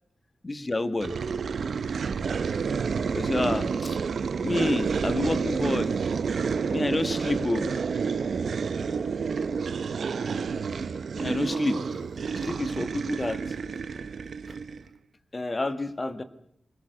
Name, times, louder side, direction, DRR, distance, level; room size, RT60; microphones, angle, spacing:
voice 1, 0.4-1.1 3.1-4.0 4.4-5.9 6.7-7.7 11.2-12.1 12.4-13.4 15.3-16.2, left 2 dB, 30° left, 12 dB, 1.6 m, -28 dB
sound 1, 1.0-14.9, right 5 dB, 70° right, 0.8 m, -29 dB
24.5 x 19.0 x 6.7 m, 0.74 s
wide cardioid pair, 90°, 0 cm